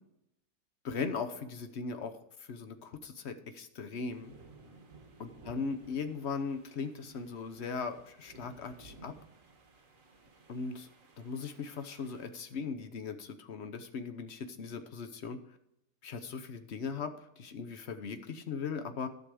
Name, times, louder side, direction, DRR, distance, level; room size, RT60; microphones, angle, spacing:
voice 1, 0.8-2.1 2.4-4.3 5.2-9.1 10.5-10.9 11.2-15.4 16.0-19.1, left 5 dB, 50° left, 9 dB, 0.9 m, -38 dB
sound 1, 4.1-12.3, right 3 dB, 50° right, 1.8 m, -57 dB
12.0 x 6.1 x 4.9 m, 0.81 s
omnidirectional pair, 1.9 m